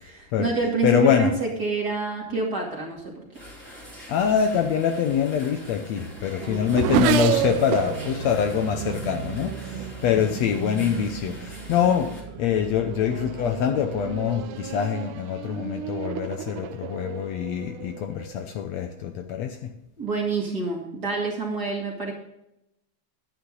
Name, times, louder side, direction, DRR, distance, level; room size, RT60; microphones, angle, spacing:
voice 1, 0.0-3.2 6.4-6.6 10.1-10.4 20.0-22.1, right 3 dB, 35° right, 2.7 m, -27 dB
voice 2, 0.8-1.3 4.1-19.7, left 8 dB, 75° left, 1.8 m, -24 dB
sound 1, 3.3-12.2, equal, 5° left, 2.5 m, -44 dB
Race car auto racing / Accelerating revving vroom, 5.1-10.9 11.7-12.1 12.5-18.5, right 11 dB, 90° right, 2.2 m, -31 dB
sound 2, 7.2-14.9, right 5 dB, 65° right, 1.6 m, -39 dB
11.5 x 9.6 x 3.9 m
omnidirectional pair, 3.5 m